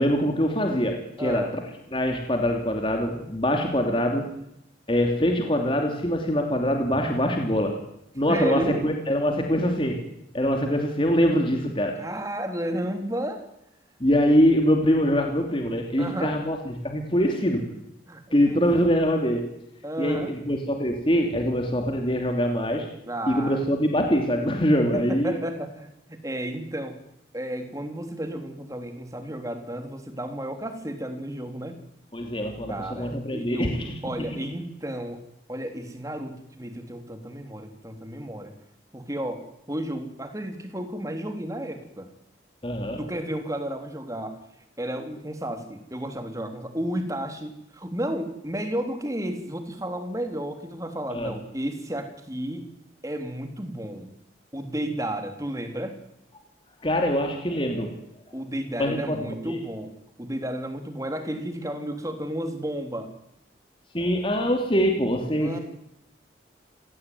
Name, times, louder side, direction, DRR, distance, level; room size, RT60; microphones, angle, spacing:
voice 1, 0.0-1.6 1.9-4.3 4.9-7.7 8.1-10.0 10.3-11.9 14.0-17.6 18.3-19.5 20.0-22.9 23.3-25.4 32.1-34.0 42.6-43.0 51.1-51.3 56.8-58.0 58.8-59.2 59.4-59.6 63.9-65.6, equal, 30° left, 3 dB, 2.9 m, -23 dB
voice 2, 1.2-1.5 8.3-8.8 12.0-13.4 16.0-16.4 18.1-18.6 19.8-20.4 23.1-23.6 24.9-27.0 27.3-31.8 32.7-35.2 35.5-38.5 38.9-42.1 43.0-44.4 44.8-52.7 53.0-54.1 54.5-56.0 58.3-63.1 65.4-65.6, right 1 dB, 20° right, 6 dB, 3.3 m, -32 dB
28.5 x 17.0 x 9.4 m, 0.81 s
head